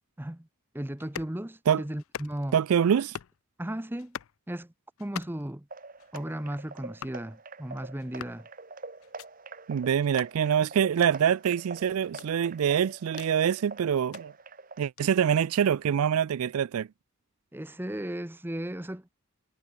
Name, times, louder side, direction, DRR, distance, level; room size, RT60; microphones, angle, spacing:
voice 1, 0.2-0.5 0.7-2.5 3.6-4.2 4.5-4.7 5.0-5.7 6.1-8.5 17.5-19.1, right 1 dB, 10° right, 0.7 m, -35 dB
sound 1, 1.0-1.4 2.0-2.6 3.0-3.4 4.0-4.4 5.0-5.5 6.0-6.3 7.0-7.2 8.0-8.4 9.0-9.3 10.0-10.3 11.0-11.1 12.0-13.3 13.9-14.2 15.0-15.1, left 9 dB, 70° left, 0.4 m, -43 dB
voice 2, 2.5-3.2 9.7-14.3 14.8-16.9, right 8 dB, 80° right, 0.4 m, -25 dB
sound 2, 5.7-14.8, right 3 dB, 40° right, 1.5 m, -45 dB
head